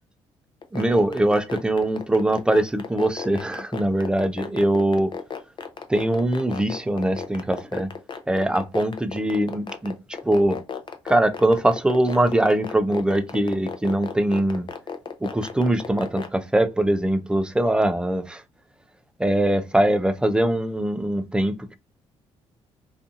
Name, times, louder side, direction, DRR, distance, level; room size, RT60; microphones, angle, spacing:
sound 1, 0.6-16.3, left 6 dB, 40° left, 0.6 m, -33 dB
voice 1, 0.7-5.1 5.9-7.9 8.3-9.9 10.2-10.6 11.1-14.7 15.2-18.4 19.2-21.8, right 1 dB, 5° right, 0.4 m, -22 dB
2.6 x 2.4 x 2.5 m
cardioid pair, 75°, 12 cm